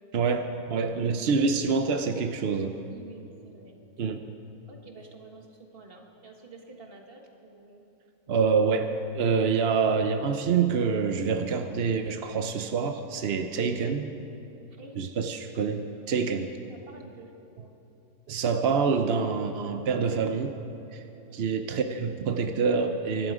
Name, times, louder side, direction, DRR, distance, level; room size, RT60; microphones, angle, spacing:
voice 1, 0.1-2.7 4.0-4.2 8.3-8.9 9.1-14.2 15.0-16.5 18.3-20.5 20.9-21.0 21.3-23.3, right 5 dB, 70° right, 7 dB, 0.5 m, -26 dB
voice 2, 2.9-3.8 4.7-7.8 14.8-15.1 16.9-17.3 17.6-17.7 21.1-21.5, right 3 dB, 30° right, 2 dB, 1.6 m, -49 dB
24.0 x 12.0 x 4.9 m, 2.9 s
omnidirectional pair, 2.0 m